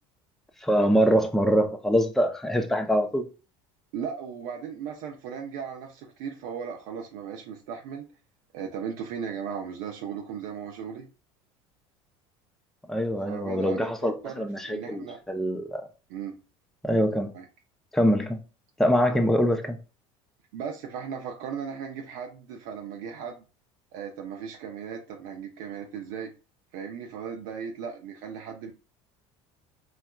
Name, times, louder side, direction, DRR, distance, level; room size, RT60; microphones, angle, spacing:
voice 1, 0.6-3.2 12.9-15.9 16.8-17.3 17.9-18.4 18.8-19.8, equal, ahead, 0.5 m, -24 dB
voice 2, 3.9-8.1 8.5-11.1 13.3-15.2 16.1-16.4 17.3-17.4 19.1-19.2 20.5-23.4 23.9-26.3 26.7-28.7, right 7 dB, 75° right, 0.6 m, -37 dB
4.1 x 2.3 x 2.3 m
supercardioid pair, 95°, 15 cm